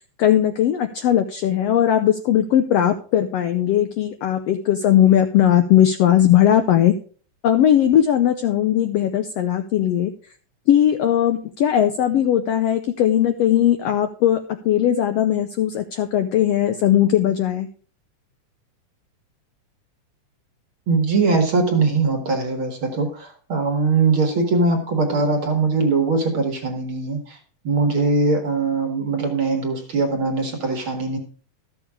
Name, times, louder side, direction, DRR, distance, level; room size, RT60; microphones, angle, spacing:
voice 1, 0.2-6.9 7.4-10.1 10.7-17.7, left 11 dB, 85° left, 8 dB, 1.4 m, -18 dB
voice 2, 20.9-27.4 27.6-31.2, right 3 dB, 50° right, 5 dB, 1.7 m, -21 dB
13.0 x 7.1 x 4.8 m, 0.42 s
omnidirectional pair, 3.6 m